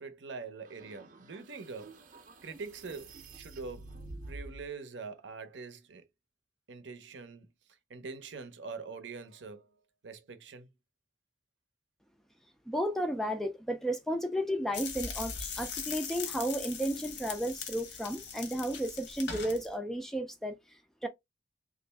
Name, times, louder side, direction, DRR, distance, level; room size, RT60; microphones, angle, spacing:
voice 1, 0.0-2.0 2.4-3.9 4.3-6.0 6.7-7.5 7.9-9.7 10.0-10.7, right 4 dB, 80° right, 0.7 m, -44 dB
sound 1, 0.6-4.7, right 2 dB, 45° right, 0.6 m, -48 dB
voice 2, 12.7-20.6 21.0-21.1, equal, ahead, 0.3 m, -33 dB
sound 2, 14.7-19.7, left 6 dB, 75° left, 1.0 m, -40 dB
3.0 x 2.5 x 3.2 m
head